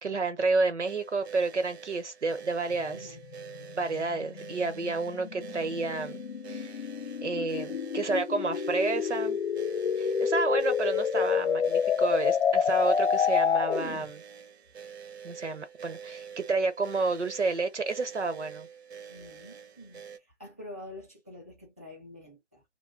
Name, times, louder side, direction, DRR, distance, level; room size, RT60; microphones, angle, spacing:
voice 1, 0.0-3.1 3.7-6.2 6.5-6.8 7.2-9.4 10.0-14.2 15.2-18.7, right 3 dB, 80° right, 1.0 m, -30 dB
sound 1, 0.8-20.2, right 7 dB, 65° right, 0.7 m, -46 dB
sound 2, 2.7-14.0, left 7 dB, 65° left, 0.5 m, -29 dB
voice 2, 2.9-3.2 19.1-22.6, left 1 dB, 15° left, 0.4 m, -47 dB
2.7 x 2.2 x 3.7 m
figure-of-eight pair, 140°, 35 cm